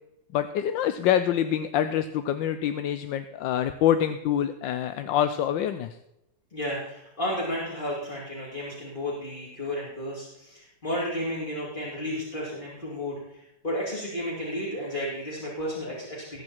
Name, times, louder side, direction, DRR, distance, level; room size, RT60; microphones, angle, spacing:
voice 1, 0.3-5.9, left 10 dB, 80° left, 10 dB, 1.4 m, -26 dB
voice 2, 6.5-16.4, equal, 25° left, -5 dB, 3.5 m, -32 dB
20.5 x 8.8 x 4.5 m, 0.85 s
omnidirectional pair, 2.0 m